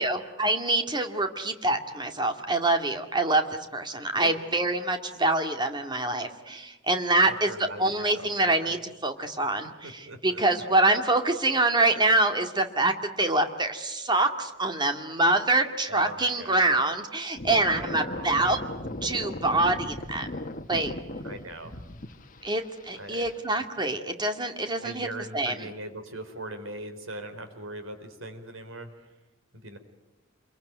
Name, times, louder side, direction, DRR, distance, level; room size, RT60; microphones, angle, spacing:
voice 1, 0.0-18.6 19.0-20.4 20.7-20.9 22.4-25.1 25.3-25.7, right 2 dB, 20° right, 6 dB, 2.2 m, -25 dB
voice 2, 7.5-8.0 8.4-8.8 9.8-10.4 11.9-12.0 15.9-16.6 17.7-18.4 21.2-21.7 23.0-23.3 24.8-28.9 29.6-29.8, right 1 dB, 80° right, 7 dB, 4.2 m, -40 dB
sound 1, 17.4-23.4, left 1 dB, 40° left, 1.5 m, -37 dB
28.0 x 23.0 x 9.3 m, 0.99 s
head